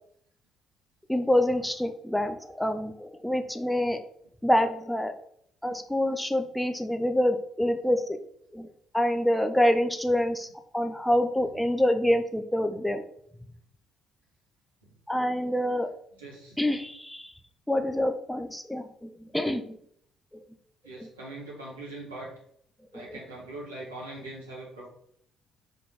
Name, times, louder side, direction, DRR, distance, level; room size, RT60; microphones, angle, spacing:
voice 1, 1.1-4.0 4.4-5.1 5.6-8.2 8.5-8.7 8.9-10.5 10.7-13.0 15.1-15.9 16.6-17.3 17.7-19.8 20.3-20.4 21.0-21.1 22.9-23.2, left 1 dB, 5° left, 7 dB, 0.8 m, -26 dB
voice 2, 16.2-16.6 20.8-22.3 22.9-24.9, right 2 dB, 85° right, -6 dB, 2.4 m, -41 dB
5.1 x 4.2 x 5.8 m, 0.67 s
figure-of-eight pair, 45°, 0 cm